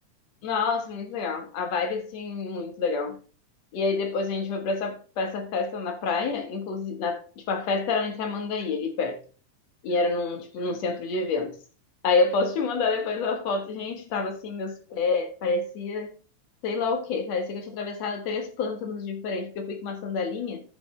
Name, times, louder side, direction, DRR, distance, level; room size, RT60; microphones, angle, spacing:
voice 1, 0.4-3.2 3.7-9.2 9.8-11.6 12.0-16.1 16.6-20.6, left 4 dB, 60° left, 2.3 m, -28 dB
11.0 x 7.0 x 3.2 m
omnidirectional pair, 3.6 m